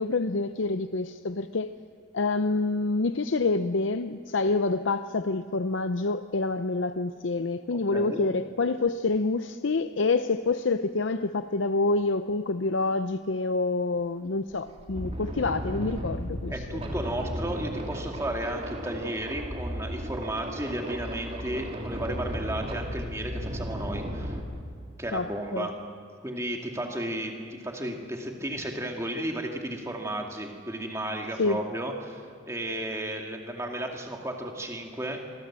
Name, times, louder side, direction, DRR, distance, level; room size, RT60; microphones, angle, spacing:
voice 1, 0.0-1.7 2.1-16.8 25.1-25.7 31.4-31.6, left 3 dB, 75° left, 10 dB, 0.6 m, -27 dB
voice 2, 7.7-8.3 16.5-24.4 25.0-25.7 26.2-35.2, right 1 dB, 15° right, 2 dB, 2.5 m, -33 dB
sound 1, 14.0-14.1 14.5-24.4, equal, 30° right, 2.8 m, -35 dB
26.0 x 23.0 x 7.6 m, 2.1 s
head